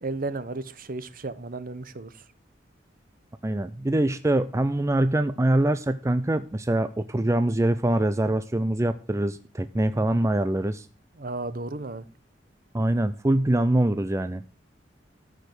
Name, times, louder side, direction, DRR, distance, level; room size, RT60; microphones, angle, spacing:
voice 1, 0.0-2.2 11.2-12.1, right 2 dB, 50° right, 0.9 m, -34 dB
voice 2, 3.4-10.9 12.7-14.4, right 1 dB, 15° right, 0.5 m, -24 dB
13.5 x 5.0 x 8.0 m
head